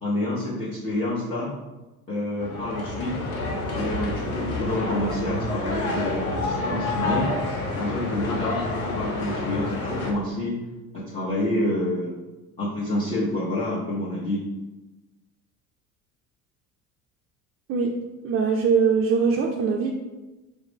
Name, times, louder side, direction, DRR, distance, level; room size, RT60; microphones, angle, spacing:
voice 1, 0.0-1.5 2.1-3.2 3.7-7.3 7.8-10.6 10.9-12.1 12.6-14.4, left 1 dB, 20° left, -9 dB, 1.1 m, -28 dB
sound 1, 2.4-10.1, left 2 dB, 90° left, 0.7 m, -29 dB
voice 2, 18.2-19.9, right 5 dB, 35° right, 0 dB, 0.4 m, -22 dB
4.7 x 2.1 x 3.5 m, 1.1 s
hypercardioid pair, 65°, 42 cm